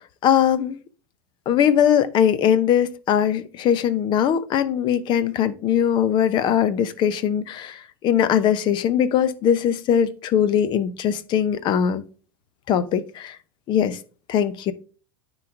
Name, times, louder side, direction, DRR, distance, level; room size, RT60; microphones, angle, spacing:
voice 1, 0.2-0.8 1.5-12.0 12.7-13.4 13.7-14.0 14.3-14.7, left 9 dB, 40° left, 0.9 m, -20 dB
9.5 x 4.1 x 4.6 m
figure-of-eight pair, 85°, 12 cm